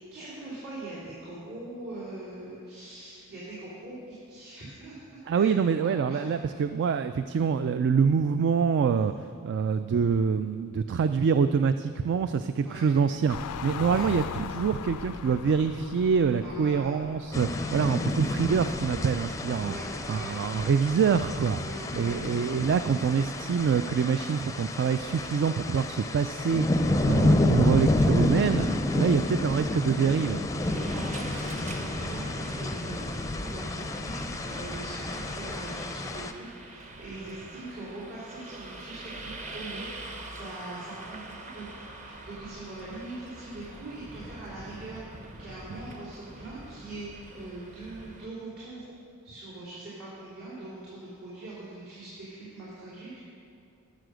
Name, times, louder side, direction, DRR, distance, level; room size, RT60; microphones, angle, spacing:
voice 1, 0.0-4.0 4.3-6.2 12.6-12.9 13.9-14.1 16.4-16.9 19.6-20.3 21.6-22.2 30.7-48.9 49.2-53.2, right 2 dB, 70° right, -11 dB, 3.3 m, -42 dB
voice 2, 5.3-9.1 9.4-19.7 20.1-21.6 21.9-28.7 28.9-30.4, right 6 dB, 50° right, 10 dB, 0.3 m, -25 dB
sound 1, 13.3-21.7, left 6 dB, 85° left, 0.4 m, -41 dB
sound 2, 17.3-36.3, left 1 dB, 15° left, 0.5 m, -29 dB
sound 3, 30.6-48.3, right 2 dB, 35° right, 1.0 m, -44 dB
13.0 x 6.7 x 6.3 m, 2.4 s
head